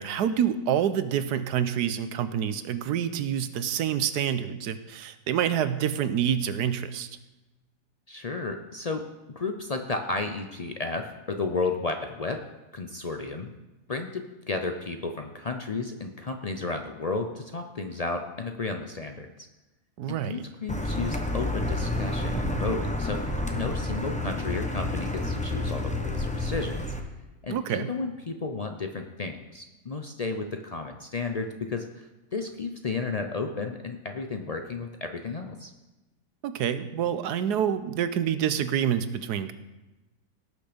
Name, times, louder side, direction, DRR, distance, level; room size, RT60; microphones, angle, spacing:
voice 1, 0.0-7.1 20.0-20.4 27.5-27.9 36.4-39.5, right 9 dB, 85° right, 12 dB, 1.3 m, -27 dB
voice 2, 8.1-9.1 9.4-12.4 12.7-13.5 13.9-19.3 20.1-26.9 27.4-35.7, left 3 dB, 70° left, 5 dB, 0.3 m, -33 dB
Car, 20.7-27.0, left 1 dB, 5° left, 0.7 m, -29 dB
18.0 x 6.3 x 5.1 m, 1.1 s
omnidirectional pair, 1.7 m